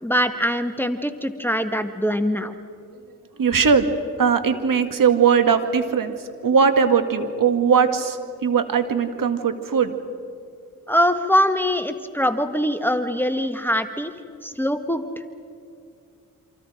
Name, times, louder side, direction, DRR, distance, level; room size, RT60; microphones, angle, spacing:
voice 1, 0.0-2.5 10.9-14.1 14.4-15.0, equal, 5° left, 8 dB, 1.4 m, -22 dB
voice 2, 3.4-3.9 4.2-6.1 6.4-9.9, right 6 dB, 65° right, 8 dB, 2.1 m, -19 dB
27.5 x 26.0 x 5.1 m, 2.4 s
supercardioid pair, 50°, 36 cm